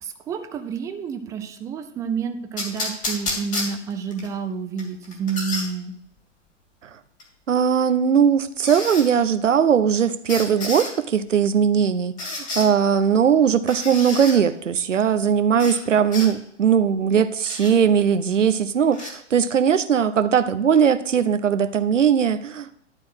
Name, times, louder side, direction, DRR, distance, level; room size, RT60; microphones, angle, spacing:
voice 1, 0.0-5.9, right 6 dB, 10° right, 7 dB, 0.4 m, -29 dB
sound 1, 2.6-4.3 4.8-5.7 7.2-7.3 8.6-9.1 10.3-10.9 12.2-12.7 13.7-14.4 15.6-15.8 16.1-16.3 17.5-17.7 18.9-19.1, left 2 dB, 20° left, 2.5 m, -30 dB
voice 2, 7.5-22.7, right 7 dB, 85° right, 11 dB, 0.8 m, -19 dB
11.5 x 4.4 x 6.2 m, 0.72 s
figure-of-eight pair, 115°, 36 cm